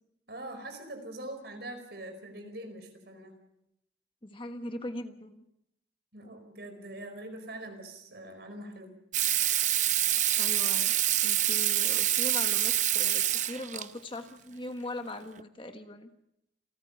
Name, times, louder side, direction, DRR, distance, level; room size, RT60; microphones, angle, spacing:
voice 1, 0.3-3.3 6.1-8.9, right 1 dB, 60° right, 6 dB, 5.0 m, -43 dB
voice 2, 4.2-5.4 10.4-10.9 11.2-16.1, left 1 dB, 30° left, 7 dB, 1.4 m, -40 dB
Water tap faucet / Sink (filling or washing), 9.1-13.9 15.4-15.5, right 12 dB, 40° right, 0.7 m, -26 dB
28.0 x 14.5 x 6.9 m, 0.80 s
head